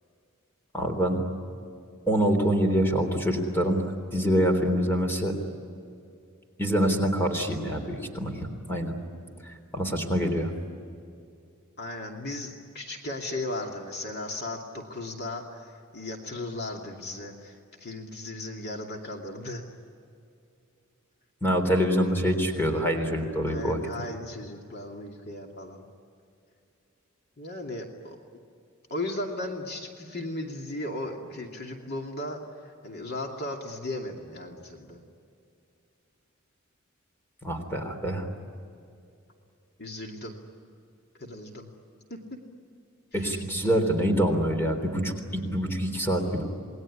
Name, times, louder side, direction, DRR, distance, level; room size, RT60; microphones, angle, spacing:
voice 1, 0.7-1.2 2.1-5.4 6.6-8.9 9.4-10.5 21.4-23.8 37.4-38.3 43.1-46.4, equal, 10° left, 5 dB, 3.6 m, -25 dB
voice 2, 11.8-19.7 23.5-25.8 27.4-28.2 28.9-35.0 39.8-40.4 41.2-41.7 42.1-42.2 43.1-43.4, left 2 dB, 50° left, 2 dB, 2.7 m, -36 dB
28.5 x 20.5 x 9.9 m, 2.5 s
head